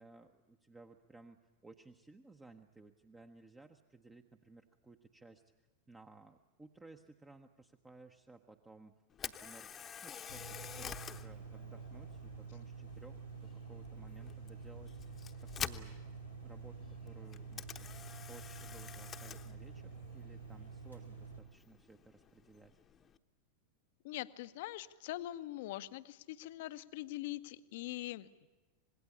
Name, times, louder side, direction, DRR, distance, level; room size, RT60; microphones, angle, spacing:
voice 1, 0.0-8.9 9.2-9.7 10.0-16.1 16.4-22.8, right 3 dB, 10° right, 7 dB, 1.0 m, -58 dB
Camera, 9.1-23.2, left 8 dB, 25° left, 1.0 m, -49 dB
sound 1, 10.3-21.4, right 5 dB, 85° right, 2.8 m, -48 dB
voice 2, 24.0-28.3, left 15 dB, 50° left, 14 dB, 0.8 m, -43 dB
26.0 x 20.5 x 8.5 m, 1.2 s
figure-of-eight pair, 90°, 0 cm